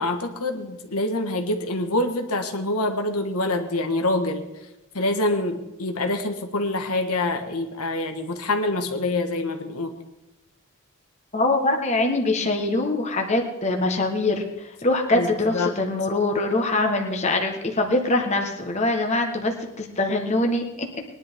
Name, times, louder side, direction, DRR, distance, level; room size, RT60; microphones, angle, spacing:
voice 1, 0.0-4.4 4.9-9.9 15.1-15.7, left 2 dB, 90° left, 5 dB, 1.6 m, -26 dB
voice 2, 11.3-14.5 14.8-20.9, left 2 dB, 30° left, 3 dB, 1.4 m, -23 dB
21.0 x 11.0 x 3.7 m, 0.99 s
head